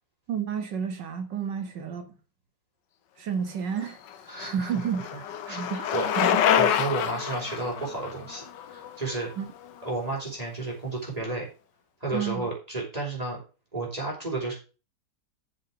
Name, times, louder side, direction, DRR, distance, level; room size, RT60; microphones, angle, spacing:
voice 1, 0.3-2.1 3.2-4.0 4.4-6.4 9.4-9.5 12.1-12.5, right 7 dB, 80° right, 2.2 m, -31 dB
Bicycle, 3.9-9.9, left 9 dB, 80° left, 1.5 m, -27 dB
voice 2, 4.3-5.2 5.5-9.3 9.8-11.5 12.0-13.4 13.7-14.5, right 2 dB, 20° right, 4.1 m, -32 dB
7.1 x 6.7 x 5.9 m
omnidirectional pair, 1.9 m